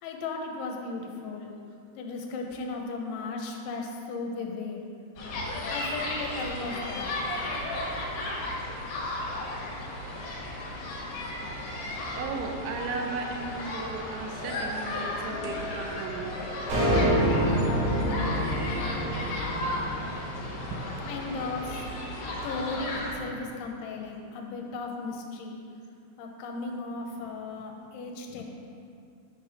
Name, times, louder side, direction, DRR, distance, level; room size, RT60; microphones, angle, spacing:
voice 1, 0.0-1.5 2.0-4.8 5.7-7.2 21.1-21.8 22.4-25.6 26.2-28.4, left 3 dB, 85° left, 1 dB, 3.1 m, -36 dB
sound 1, 5.2-23.1, left 1 dB, 70° left, 3.0 m, -34 dB
voice 2, 12.1-16.3 20.7-20.8, right 4 dB, 85° right, 2 dB, 3.1 m, -35 dB
sound 2, 16.7-21.1, equal, 65° right, 3.4 m, -27 dB
9.2 x 3.3 x 6.0 m, 2.4 s
omnidirectional pair, 5.4 m